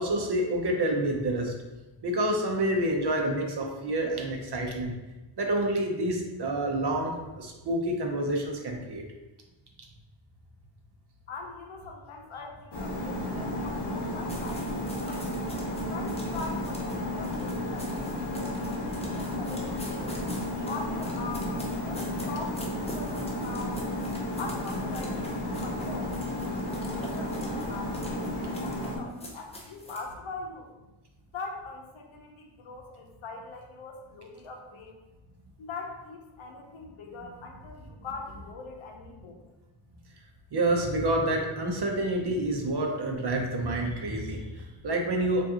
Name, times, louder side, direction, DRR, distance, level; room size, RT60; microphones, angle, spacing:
voice 1, 0.0-1.5 2.0-4.9 5.4-9.0 40.5-45.5, right 1 dB, 55° right, 2 dB, 0.7 m, -28 dB
voice 2, 11.3-15.3 15.9-20.2 20.7-23.8 24.3-26.1 26.7-30.7 31.3-35.0 35.6-39.4, left 3 dB, 70° left, 1 dB, 0.7 m, -42 dB
sound 1, 12.7-29.0, left 1 dB, 55° left, 1.0 m, -33 dB
sound 2, 14.3-30.1, equal, 15° left, 0.5 m, -46 dB
4.7 x 2.5 x 2.8 m, 1.1 s
wide cardioid pair, 130°, 50 cm